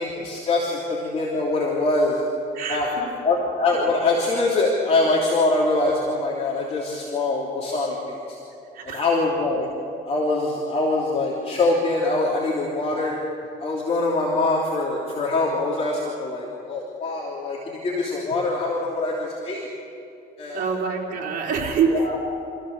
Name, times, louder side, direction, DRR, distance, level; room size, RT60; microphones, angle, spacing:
voice 1, 0.0-2.2 2.7-2.9 3.2-8.4 8.8-9.7 10.0-13.2 13.6-19.7 20.4-20.7 21.9-22.2, left 2 dB, 40° left, -4 dB, 3.2 m, -24 dB
voice 2, 2.5-3.0 8.7-9.2 20.5-22.0, right 5 dB, 55° right, -2 dB, 4.3 m, -25 dB
26.5 x 15.5 x 6.8 m, 2.6 s
cardioid pair, 110°, 17 cm